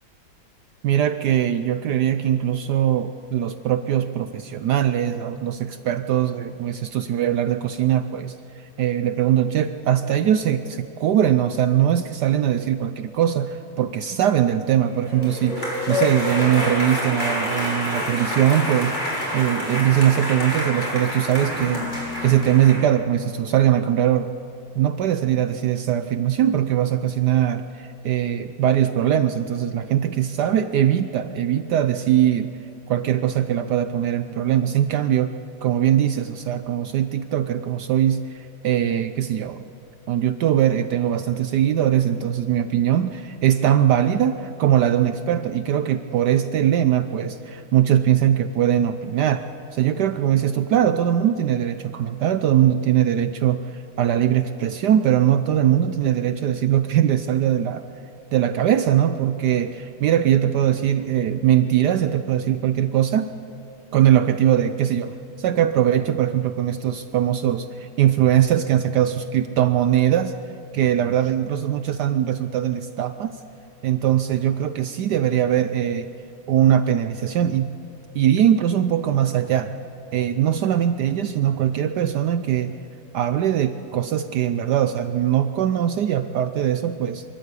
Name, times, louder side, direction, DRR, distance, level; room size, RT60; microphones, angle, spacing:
voice 1, 0.8-24.3 24.7-32.5 32.9-35.3 35.6-39.6 40.1-49.5 49.7-57.8 58.3-63.3 63.9-70.3 70.7-73.4 73.8-76.1 76.5-77.7 78.1-79.7 80.1-82.7 83.1-87.2, right 10 dB, 70° right, 10 dB, 1.0 m, -21 dB
sound 1, 14.9-22.8, left 1 dB, 20° left, 5.4 m, -27 dB
24.5 x 13.5 x 8.3 m, 2.8 s
omnidirectional pair, 2.3 m